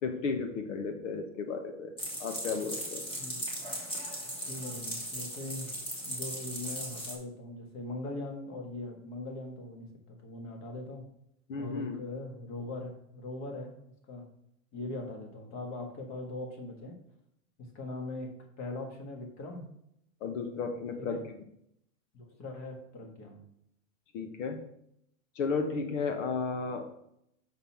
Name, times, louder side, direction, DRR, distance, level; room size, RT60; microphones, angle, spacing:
voice 1, 0.0-1.9 2.2-3.0 11.5-12.0 20.2-21.2 24.1-24.6 25.4-26.9, left 4 dB, 65° left, 6 dB, 1.1 m, -33 dB
sound 1, 2.0-7.1, equal, 10° left, 1.6 m, -38 dB
voice 2, 4.5-5.7 6.0-11.0 11.6-13.8 14.1-14.3 14.7-17.0 17.6-19.7 21.0-21.2 22.1-23.4, left 2 dB, 30° left, 3 dB, 1.6 m, -41 dB
6.0 x 5.4 x 5.8 m, 0.76 s
supercardioid pair, 160°, 42 cm